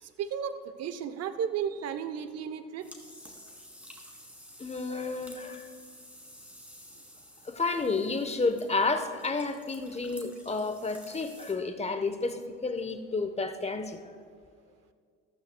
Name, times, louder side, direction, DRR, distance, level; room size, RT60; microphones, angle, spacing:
voice 1, 0.0-2.9, right 8 dB, 50° right, 11 dB, 0.9 m, -34 dB
sound 1, 2.8-11.5, equal, 5° right, 2.6 m, -51 dB
voice 2, 4.6-5.7 7.4-14.1, left 3 dB, 20° left, 8 dB, 1.0 m, -31 dB
14.0 x 13.5 x 2.3 m, 2.1 s
hypercardioid pair, 65°, 32 cm